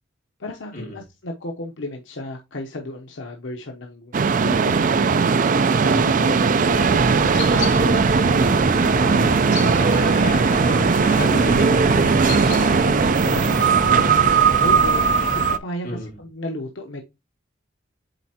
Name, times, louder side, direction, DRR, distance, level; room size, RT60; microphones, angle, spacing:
voice 1, 0.4-5.2 5.8-10.1 11.3-11.6 12.4-15.0 15.3-17.0, left 2 dB, 90° left, 0.9 m, -34 dB
sound 1, 4.1-15.6, right 5 dB, 45° right, 0.4 m, -18 dB
sound 2, 6.7-15.5, left 1 dB, 65° left, 1.7 m, -29 dB
voice 2, 9.7-12.2 12.6-12.9 15.8-16.1, left 1 dB, 50° left, 3.4 m, -31 dB
8.0 x 4.3 x 2.9 m
head